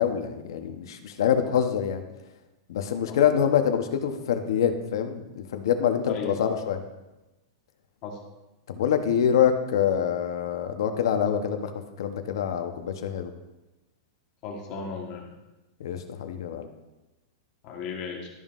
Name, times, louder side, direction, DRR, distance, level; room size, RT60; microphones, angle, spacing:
voice 1, 0.0-2.0 2.7-6.8 8.7-11.7 12.0-13.3 15.8-16.7, left 8 dB, 70° left, 7 dB, 0.9 m, -25 dB
voice 2, 6.0-6.4 8.0-8.2 14.4-15.3 17.6-18.3, left 5 dB, 35° left, 0 dB, 1.3 m, -35 dB
12.5 x 5.4 x 2.5 m, 1.0 s
supercardioid pair, 165°, 2 cm